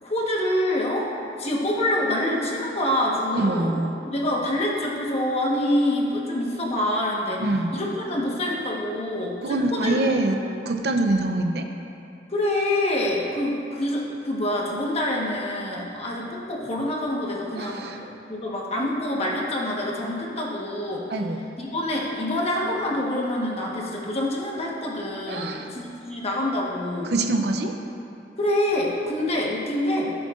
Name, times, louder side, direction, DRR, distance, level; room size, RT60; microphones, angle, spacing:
voice 1, 0.0-3.7 4.0-7.4 7.7-10.0 12.3-21.1 21.6-27.1 28.4-30.1, left 1 dB, 35° left, -3 dB, 1.3 m, -26 dB
voice 2, 3.3-3.9 7.4-7.7 9.4-10.4 10.6-11.6 17.6-18.0 21.1-21.4 25.3-25.7 27.0-27.7, right 2 dB, 65° right, 4 dB, 0.7 m, -24 dB
15.0 x 7.6 x 2.5 m, 2.7 s
head